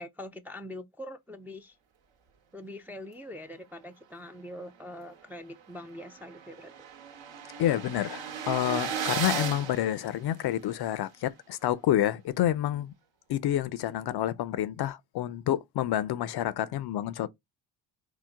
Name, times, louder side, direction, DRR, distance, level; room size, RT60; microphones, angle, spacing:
voice 1, 0.0-1.7 2.5-6.7, left 1 dB, 5° right, 0.4 m, -43 dB
sound 1, 5.2-5.3 5.6-5.7 5.9-10.7, right 7 dB, 65° right, 1.1 m, -36 dB
voice 2, 7.6-12.9 13.3-17.3, left 12 dB, 55° left, 0.5 m, -28 dB
4.5 x 2.0 x 3.4 m
supercardioid pair, 80°, 49 cm